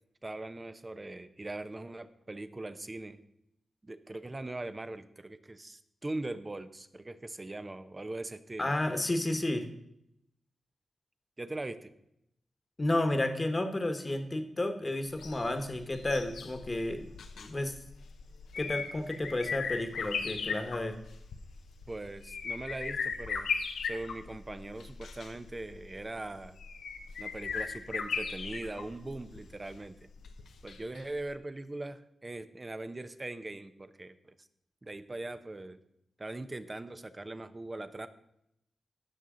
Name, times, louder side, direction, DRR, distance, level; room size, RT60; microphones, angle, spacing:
voice 1, 0.2-3.2 3.8-8.7 11.4-11.9 21.9-23.5 23.8-26.6 27.2-30.1 30.6-34.5 34.8-35.8 36.2-38.1, right 2 dB, 30° right, 11 dB, 0.8 m, -41 dB
voice 2, 8.6-9.7 12.8-17.1 17.4-17.8 18.6-21.0, left 1 dB, 30° left, 7 dB, 1.3 m, -31 dB
sound 1, 15.1-31.0 31.3-31.4, left 5 dB, 90° left, 0.8 m, -38 dB
16.5 x 6.1 x 3.8 m, 0.78 s
cardioid pair, 65°, 0 cm